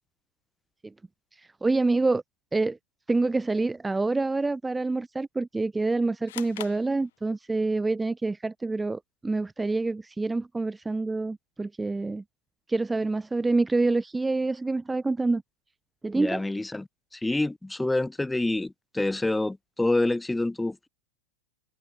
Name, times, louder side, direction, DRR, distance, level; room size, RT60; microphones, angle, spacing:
voice 1, 1.6-2.2 2.5-2.8 3.1-12.2 12.7-15.4 16.0-16.4, right 3 dB, 10° right, 1.0 m, -27 dB
sound 1, 6.3-7.7, left 15 dB, 70° left, 5.3 m, -43 dB
voice 2, 16.1-16.9 17.1-20.9, left 2 dB, 5° left, 1.4 m, -27 dB
hypercardioid pair, 100°, 0 cm